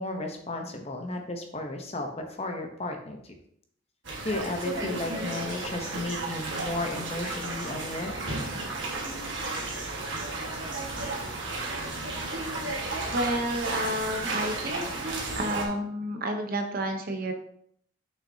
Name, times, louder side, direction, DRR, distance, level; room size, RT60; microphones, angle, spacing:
voice 1, 0.0-3.4 4.2-8.1, left 2 dB, 30° left, 4 dB, 0.8 m, -34 dB
sound 1, 4.0-15.7, right 2 dB, 65° right, 1.5 m, -33 dB
voice 2, 13.1-14.9 15.3-17.3, right 1 dB, 45° right, 4 dB, 0.8 m, -30 dB
6.5 x 5.6 x 2.8 m, 0.68 s
head